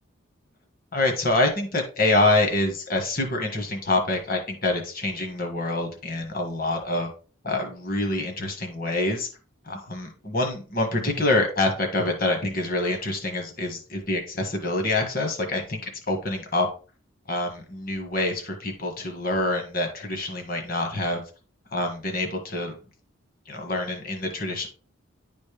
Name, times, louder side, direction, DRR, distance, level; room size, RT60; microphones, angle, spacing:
voice 1, 0.9-7.1 7.4-9.3 9.7-16.7 17.3-21.2 21.7-22.7 23.5-24.7, left 2 dB, 45° left, 3 dB, 1.5 m, -26 dB
10.5 x 4.3 x 3.4 m, 0.36 s
head